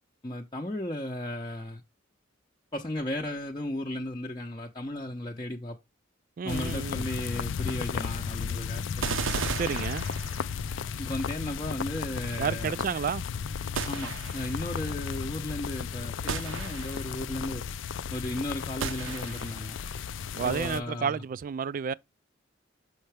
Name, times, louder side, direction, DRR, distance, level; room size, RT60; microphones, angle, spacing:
voice 1, 0.2-1.8 2.7-5.8 6.4-9.2 11.0-12.8 13.9-17.6 18.1-19.8 20.4-21.2, left 1 dB, 25° left, 0.7 m, -35 dB
voice 2, 6.4-7.0 9.5-10.0 12.4-13.2 20.4-21.9, right 6 dB, 45° right, 0.3 m, -31 dB
sound 1, 6.5-20.8, left 6 dB, 75° left, 0.4 m, -34 dB
sound 2, 9.0-10.7 13.8-14.6 16.3-17.2 18.8-19.7, right 5 dB, 90° right, 0.8 m, -34 dB
6.5 x 5.6 x 3.3 m
head